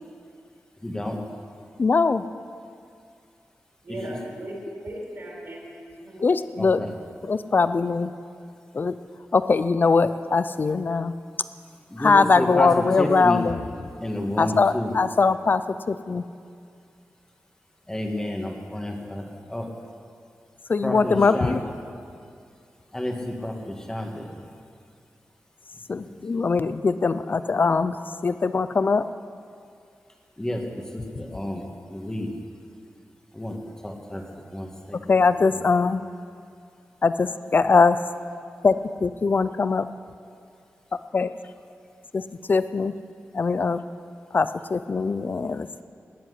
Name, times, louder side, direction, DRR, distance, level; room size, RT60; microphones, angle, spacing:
voice 1, 0.8-1.2 6.6-6.9 11.9-13.4 14.0-14.9 17.9-19.7 20.8-21.7 22.9-24.4 26.0-26.1 30.4-30.6 30.9-31.6 31.9-32.3 33.3-33.6 33.8-34.2 34.5-35.0, left 1 dB, 15° left, 2 dB, 1.8 m, -30 dB
voice 2, 1.8-2.2 6.2-6.9 7.2-8.1 8.7-8.9 9.3-11.1 12.0-13.6 14.4-15.6 15.9-16.2 20.7-21.6 25.9-27.9 28.2-29.1 35.1-36.0 37.0-38.0 38.6-39.9 41.1-41.3 42.1-42.2 42.5-42.9 43.3-43.8 44.3-45.8, left 4 dB, 45° left, 13 dB, 0.5 m, -21 dB
voice 3, 3.8-5.6 5.9-6.2, right 1 dB, 50° right, -2 dB, 4.7 m, -37 dB
19.0 x 7.8 x 9.6 m, 2.3 s
wide cardioid pair, 135°, 5 cm